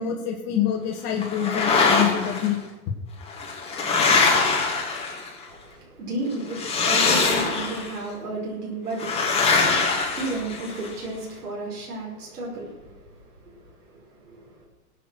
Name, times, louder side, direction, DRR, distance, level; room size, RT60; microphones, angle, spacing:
voice 1, 0.0-2.6, left 10 dB, 30° left, -3 dB, 1.9 m, -26 dB
hockey outdoor player skate by various, 1.2-2.5 3.3-5.4 6.5-7.9 9.0-10.9, left 4 dB, 15° left, 2.6 m, -22 dB
voice 2, 5.4-14.7, right 2 dB, 85° right, -2 dB, 5.3 m, -34 dB
18.5 x 8.1 x 6.3 m, 1.1 s
hypercardioid pair, 145°, 45 cm